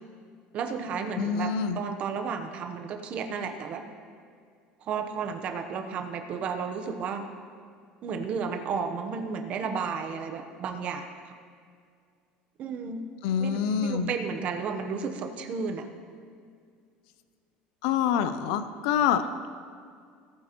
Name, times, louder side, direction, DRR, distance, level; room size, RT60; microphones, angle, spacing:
voice 1, 0.5-3.8 4.9-7.2 8.0-11.3 12.6-13.0 13.4-15.9 19.2-19.4, right 5 dB, 40° right, 5 dB, 0.9 m, -33 dB
voice 2, 1.2-1.8 13.2-14.1 17.8-19.2, left 8 dB, 80° left, 11 dB, 0.6 m, -26 dB
18.5 x 9.3 x 3.0 m, 2.2 s
cardioid pair, 165°, 4 cm